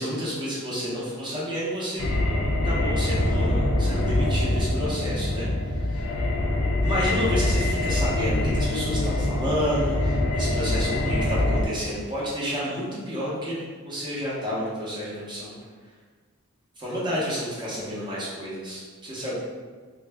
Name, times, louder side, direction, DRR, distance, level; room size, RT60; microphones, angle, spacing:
voice 1, 0.0-2.0 2.6-6.1 6.8-15.5 16.8-19.4, equal, 20° right, -7 dB, 0.8 m, -30 dB
sound 1, 2.0-11.7, left 1 dB, 70° left, 0.5 m, -24 dB
3.2 x 2.4 x 3.4 m, 1.5 s
head